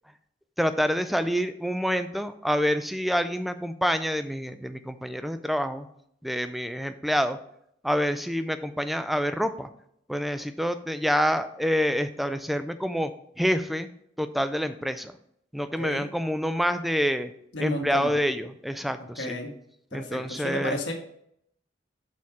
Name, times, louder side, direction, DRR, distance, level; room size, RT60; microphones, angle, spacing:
voice 1, 0.6-5.9 6.2-7.4 7.8-9.7 10.1-13.1 13.4-13.9 14.2-15.1 15.5-17.3 17.6-19.4 19.9-20.8, equal, ahead, 10 dB, 0.3 m, -27 dB
voice 2, 17.5-18.1 19.2-19.5 19.9-20.9, left 1 dB, 75° left, 2 dB, 1.3 m, -32 dB
6.4 x 4.2 x 4.7 m, 0.72 s
head